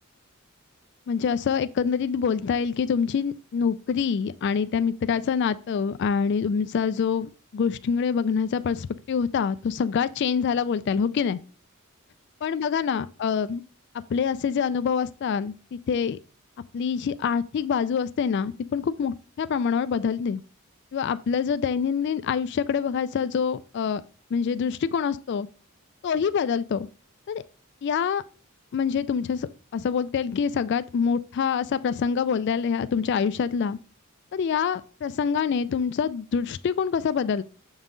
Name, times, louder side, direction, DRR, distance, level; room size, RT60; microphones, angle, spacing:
voice 1, 1.1-11.4 12.4-13.6 14.1-16.2 16.7-20.4 20.9-24.0 24.3-25.5 26.0-26.9 27.3-27.4 27.8-28.2 28.7-33.8 34.3-37.4, left 6 dB, 50° left, 0.3 m, -26 dB
7.1 x 5.5 x 3.8 m
head